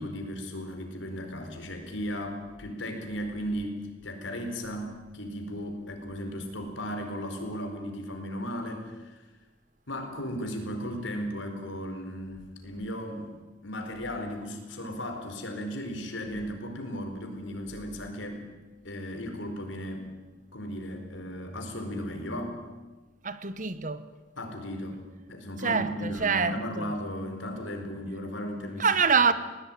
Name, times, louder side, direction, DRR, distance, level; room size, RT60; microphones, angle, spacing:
voice 1, 0.0-9.2 9.9-13.3 13.6-18.5 18.8-20.1 20.5-22.6 24.4-29.0, equal, 80° left, 4.5 m, -36 dB
voice 2, 23.2-24.1 25.6-26.9 28.8-29.3, right 5 dB, 40° right, 1.2 m, -25 dB
20.0 x 19.5 x 9.2 m
head